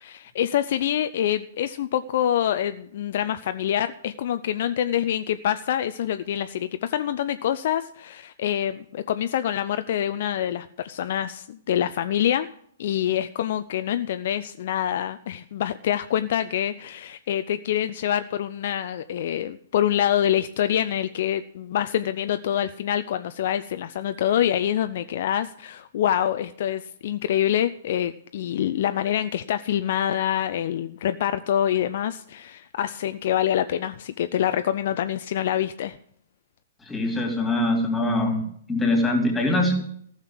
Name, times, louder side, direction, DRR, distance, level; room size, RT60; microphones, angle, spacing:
voice 1, 0.0-12.5 12.8-36.0, left 10 dB, 50° left, 11 dB, 0.5 m, -26 dB
voice 2, 36.8-39.7, left 1 dB, 10° left, 3 dB, 3.2 m, -23 dB
15.0 x 6.6 x 8.9 m, 0.65 s
figure-of-eight pair, 115°, 0 cm